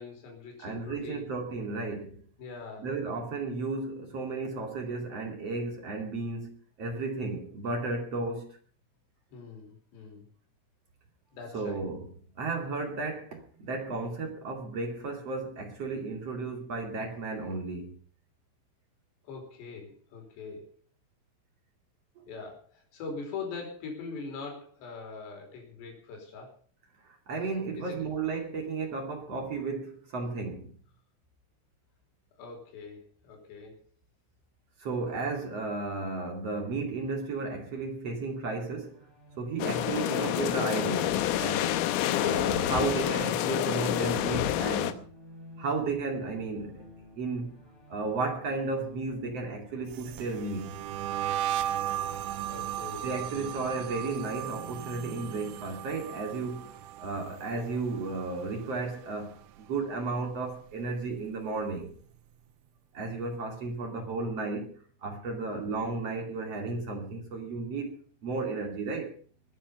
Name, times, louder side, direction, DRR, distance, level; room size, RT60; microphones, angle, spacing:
voice 1, 0.0-1.3 2.4-2.9 9.3-10.3 11.3-11.8 19.2-20.7 22.3-26.6 27.8-28.1 32.4-33.8 52.5-53.5 65.5-65.7, left 4 dB, 55° left, 6.8 m, -42 dB
voice 2, 0.6-2.2 2.8-8.6 11.5-12.1 12.4-18.0 27.1-30.7 34.8-39.0 39.4-41.8 42.2-45.0 45.6-46.9 47.1-47.5 47.9-50.7 53.0-62.0 62.9-64.7 65.0-69.2, right 3 dB, 40° right, 2.7 m, -34 dB
sound 1, 38.5-57.1, equal, 5° right, 5.1 m, -53 dB
sound 2, 39.6-44.9, left 12 dB, 80° left, 3.6 m, -28 dB
sound 3, 49.9-59.1 59.3-59.8 60.1-61.7, right 12 dB, 80° right, 3.4 m, -36 dB
22.0 x 9.9 x 5.5 m
omnidirectional pair, 5.9 m